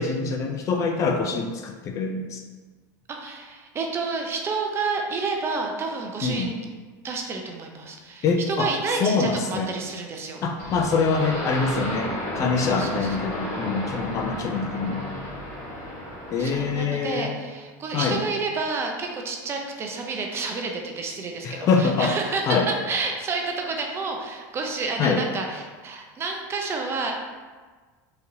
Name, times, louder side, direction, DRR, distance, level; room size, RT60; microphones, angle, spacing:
voice 1, 0.0-2.4 6.2-6.5 8.2-8.7 9.0-9.7 10.4-15.0 16.3-17.4 17.9-18.2 21.4-22.1 22.5-22.7 25.0-25.2, left 4 dB, 35° left, 3 dB, 0.3 m, -24 dB
voice 2, 3.1-6.6 7.0-10.4 12.6-13.3 16.4-27.1, right 4 dB, 30° right, 2 dB, 0.5 m, -30 dB
sound 1, 10.6-16.9, left 1 dB, 75° left, 1.2 m, -33 dB
3.9 x 2.7 x 2.6 m, 1.4 s
supercardioid pair, 125°, 9 cm